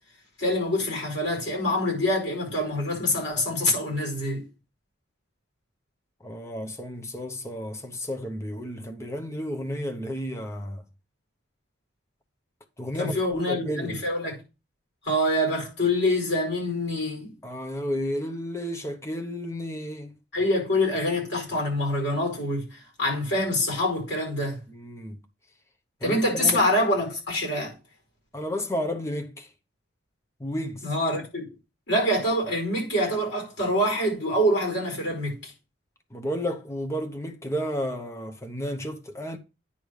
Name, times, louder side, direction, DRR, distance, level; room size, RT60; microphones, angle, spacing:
voice 1, 0.4-4.4 13.0-14.4 15.0-17.3 20.3-24.6 26.0-27.7 30.8-31.4 31.9-35.5, left 1 dB, 55° left, 5.3 m, -25 dB
voice 2, 6.2-10.8 12.8-14.0 17.4-20.1 24.7-25.2 26.0-26.6 28.3-29.5 30.4-30.9 36.1-39.4, equal, 15° left, 0.8 m, -32 dB
9.8 x 3.3 x 6.5 m
head